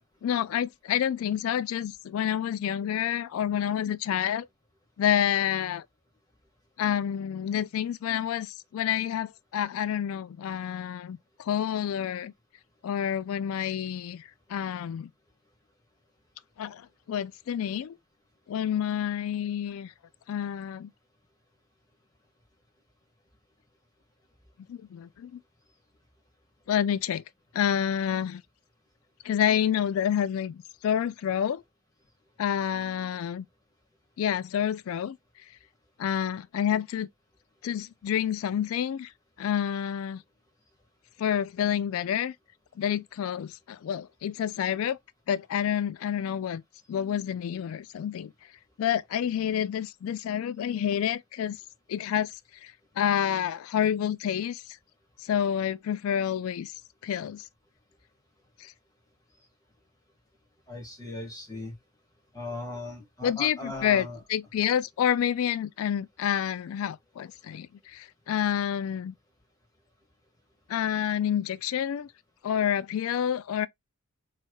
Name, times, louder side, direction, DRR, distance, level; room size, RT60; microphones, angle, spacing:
voice 1, 0.2-4.5 5.0-5.8 6.8-12.3 12.8-15.1 16.6-18.0 18.5-19.9 20.3-20.9 24.7-25.4 26.7-27.2 27.5-28.4 29.2-31.6 32.4-33.5 34.2-35.2 36.0-37.1 37.6-39.1 39.4-40.2 41.2-42.3 42.8-45.0 45.3-46.6 46.9-48.3 48.8-51.6 51.9-52.3 52.6-54.6 55.2-56.7 57.0-57.4 58.6-58.7 63.2-69.1 70.7-72.1 72.4-73.7, left 9 dB, 70° left, 0.3 m, -28 dB
voice 2, 60.7-61.7 62.3-64.2, left 2 dB, 15° left, 1.6 m, -38 dB
4.4 x 3.2 x 2.3 m
head